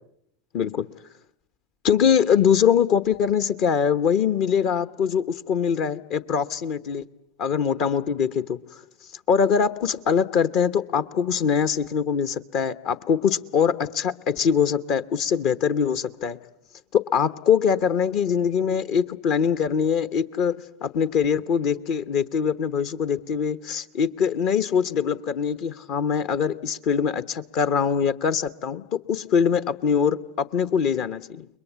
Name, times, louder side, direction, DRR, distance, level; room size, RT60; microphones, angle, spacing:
voice 1, 0.5-0.9 1.8-7.0 7.4-8.6 9.3-16.4 16.9-31.5, left 7 dB, 50° left, 14 dB, 1.0 m, -23 dB
29.5 x 22.0 x 8.1 m, 0.77 s
figure-of-eight pair, 85°, 0 cm